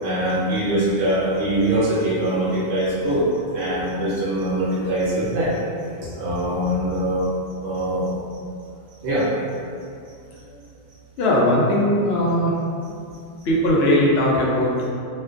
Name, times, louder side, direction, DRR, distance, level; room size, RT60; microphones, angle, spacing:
voice 1, 0.0-3.2 3.5-5.6 6.0-7.3 7.6-8.1 9.0-9.3, right 1 dB, 65° right, -8 dB, 0.9 m, -22 dB
voice 2, 11.2-12.6 13.4-14.9, left 1 dB, 65° left, -4 dB, 0.7 m, -19 dB
2.4 x 2.2 x 2.4 m, 2.4 s
omnidirectional pair, 1.3 m